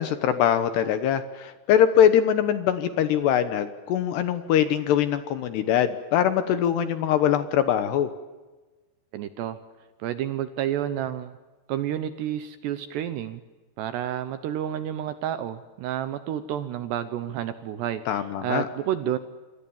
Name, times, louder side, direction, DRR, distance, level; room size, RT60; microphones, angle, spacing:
voice 1, 0.0-8.1 18.1-18.7, left 9 dB, 70° left, 10 dB, 2.8 m, -22 dB
voice 2, 9.1-9.6 10.0-11.4 11.7-13.4 13.8-19.2, right 11 dB, 75° right, 11 dB, 2.7 m, -30 dB
27.0 x 25.5 x 7.2 m, 1.3 s
omnidirectional pair, 5.8 m